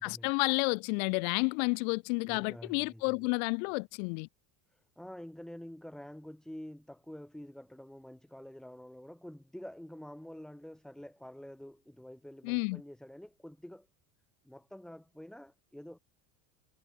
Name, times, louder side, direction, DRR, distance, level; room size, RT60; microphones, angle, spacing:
voice 1, 0.0-4.3 12.4-12.8, left 37 dB, 75° left, 0.6 m, -31 dB
voice 2, 2.2-3.3 4.7-13.9 14.4-16.0, left 1 dB, ahead, 2.0 m, -48 dB
cardioid pair, 170°, 42 cm